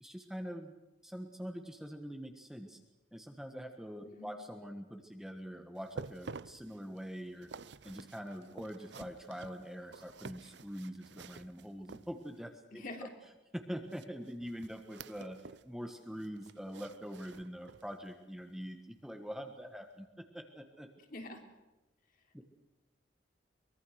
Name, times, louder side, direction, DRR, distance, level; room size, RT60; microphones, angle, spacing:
voice 1, 0.0-2.8 3.1-7.5 7.8-12.8 13.5-20.9 22.3-22.4, equal, 5° right, 4 dB, 1.5 m, -44 dB
sound 1, 5.8-12.5 13.9-15.7 16.0-18.0 18.4-18.5 19.1-19.2, right 4 dB, 65° right, 0.7 m, -50 dB
voice 2, 12.7-13.1 21.1-21.4, left 2 dB, 50° left, 3 dB, 3.6 m, -45 dB
23.5 x 22.0 x 6.5 m, 1.1 s
head